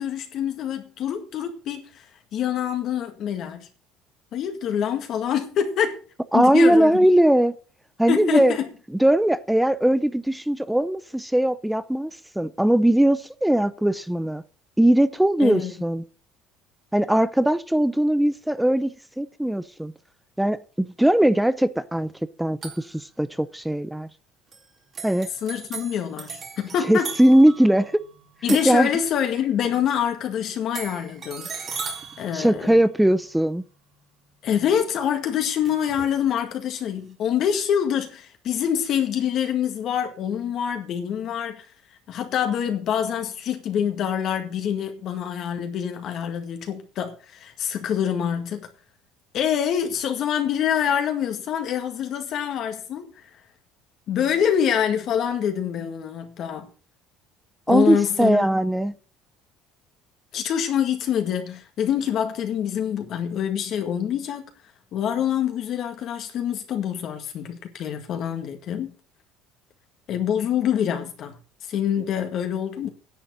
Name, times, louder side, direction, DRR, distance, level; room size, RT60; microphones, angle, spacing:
voice 1, 0.0-2.1 2.3-3.7 4.3-6.0 6.3-7.0 8.1-8.7 15.4-15.7 25.4-27.1 28.4-31.5 32.2-32.7 34.4-41.7 42.1-48.7 49.3-53.1 54.1-56.7 57.7-58.5 60.3-64.5 64.9-68.9 70.1-71.3 71.6-72.9, left 9 dB, 50° left, 1.8 m, -25 dB
voice 2, 6.3-7.5 8.0-8.5 9.0-12.1 12.4-14.4 14.8-16.0 16.9-19.9 20.4-22.1 22.4-24.1 25.0-25.3 26.9-27.9 28.6-28.9 32.3-33.6 57.7-58.9, right 1 dB, 5° right, 0.7 m, -20 dB
sound 1, 22.6-23.0 24.5-24.7 24.9-29.4 30.7-33.3 35.7-36.2, right 5 dB, 30° right, 2.4 m, -38 dB
10.5 x 7.2 x 6.6 m
cardioid pair, 130°, 0 cm